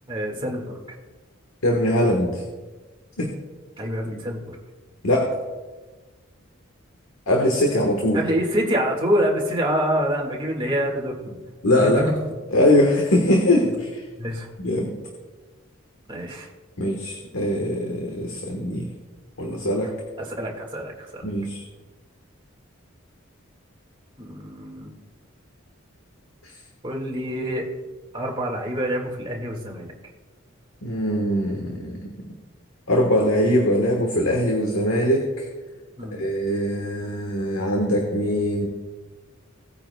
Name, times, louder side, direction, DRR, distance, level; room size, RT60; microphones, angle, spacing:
voice 1, 0.1-0.8 3.8-4.6 8.1-11.4 11.8-12.1 14.2-14.5 16.1-16.5 20.2-21.2 24.2-24.9 26.8-27.7 28.1-29.9 36.0-36.3, equal, 25° right, -1 dB, 1.8 m, -26 dB
voice 2, 1.6-2.4 3.2-3.3 5.0-5.4 7.3-8.2 11.6-12.0 12.5-14.0 14.6-14.9 16.8-18.9 19.4-19.9 21.2-21.6 30.8-32.3 32.9-35.4 36.1-38.7, left 1 dB, 80° left, 1 dB, 1.3 m, -22 dB
18.0 x 9.0 x 2.3 m, 1.3 s
head